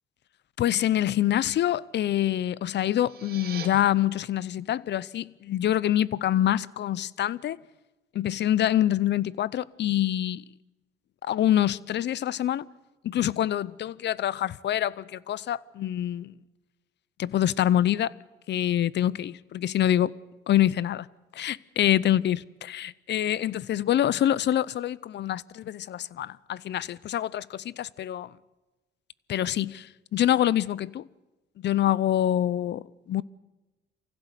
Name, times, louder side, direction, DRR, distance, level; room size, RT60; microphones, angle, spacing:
voice 1, 0.6-7.6 8.1-10.4 11.2-12.6 13.0-16.3 17.2-18.1 18.5-20.1 20.5-21.1 21.3-28.3 29.3-31.0 31.6-33.2, left 12 dB, 60° left, 0.6 m, -26 dB
sound 1, 2.9-3.7, right 8 dB, 50° right, 2.5 m, -41 dB
24.5 x 16.0 x 8.2 m
cardioid pair, 90°, 20 cm